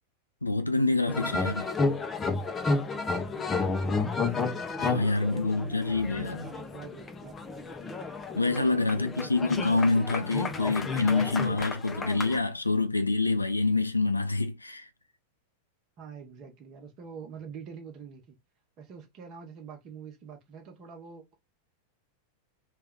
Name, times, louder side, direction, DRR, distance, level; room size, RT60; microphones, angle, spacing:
voice 1, 0.4-1.7 4.8-6.5 8.3-14.9, left 3 dB, 85° left, 0.5 m, -26 dB
sound 1, 1.1-12.4, left 3 dB, 15° left, 0.6 m, -32 dB
voice 2, 1.2-4.4 4.9-7.5 8.7-9.2 16.0-18.4 18.8-21.3, right 6 dB, 35° right, 0.9 m, -47 dB
3.2 x 2.4 x 3.6 m
figure-of-eight pair, 90°, 0 cm